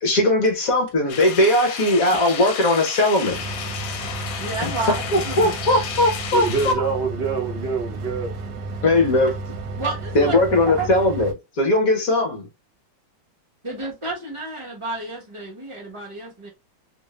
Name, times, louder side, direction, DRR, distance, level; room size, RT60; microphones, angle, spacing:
voice 1, 0.0-3.4 5.1-6.7 8.8-9.4 10.1-12.4, left 1 dB, 55° left, 1.2 m, -19 dB
sound 1, 1.1-6.8, left 7 dB, 75° left, 1.4 m, -32 dB
sound 2, 3.3-11.3, right 3 dB, 70° right, 1.3 m, -33 dB
voice 2, 4.4-5.6 9.8-10.9 13.6-16.5, right 3 dB, 25° right, 0.8 m, -30 dB
voice 3, 6.3-8.3, right 5 dB, 90° right, 0.5 m, -25 dB
3.2 x 2.6 x 3.1 m
omnidirectional pair, 2.1 m